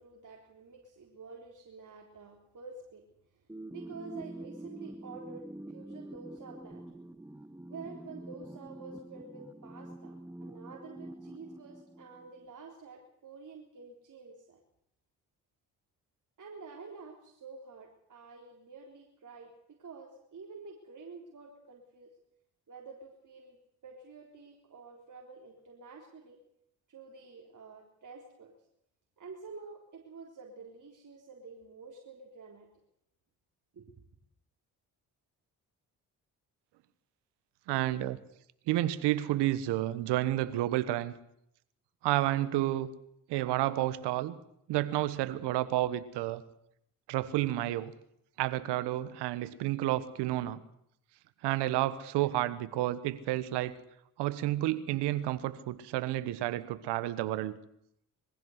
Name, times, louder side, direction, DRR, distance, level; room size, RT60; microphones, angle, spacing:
voice 1, 0.0-3.0 3.3-3.5 3.7-6.8 7.7-14.6 16.4-22.1 22.7-23.6 23.8-26.4 26.9-28.5 29.2-32.7 33.7-33.9, right 4 dB, 50° right, 0 dB, 3.9 m, -49 dB
sound 1, 3.5-12.5, right 1 dB, 5° right, 1.4 m, -46 dB
voice 2, 37.7-38.2 38.7-41.1 42.0-42.9 43.3-44.4 44.7-46.4 47.1-47.9 48.4-50.6 51.4-53.7 54.2-57.6, right 15 dB, 80° right, 15 dB, 1.4 m, -30 dB
22.0 x 15.5 x 8.1 m, 0.74 s
supercardioid pair, 55°, 40 cm